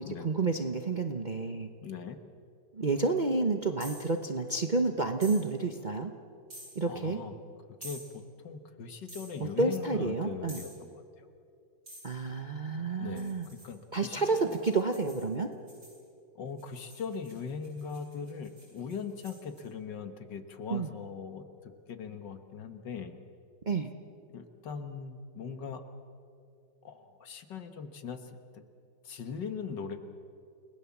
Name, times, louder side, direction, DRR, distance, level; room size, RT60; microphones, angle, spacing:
voice 1, 0.0-1.7 2.8-6.1 6.8-7.2 9.4-10.6 12.0-13.5 13.9-15.5 20.7-20.9 23.7-23.9, right 3 dB, 35° right, 5 dB, 0.8 m, -30 dB
voice 2, 1.8-2.2 6.9-7.3 7.8-11.3 13.0-14.6 16.4-21.5 21.9-23.1 24.3-25.8 26.8-28.6 29.0-30.0, left 6 dB, 70° left, 8 dB, 2.0 m, -40 dB
sound 1, 3.8-4.1 5.2-5.4 6.5-6.7 7.8-8.1 9.1-9.3 10.5-10.8 11.9-12.1 13.2-16.0 16.6-19.6, right 1 dB, 85° right, 8.7 m, -48 dB
29.5 x 19.5 x 7.2 m, 2.5 s
omnidirectional pair, 2.0 m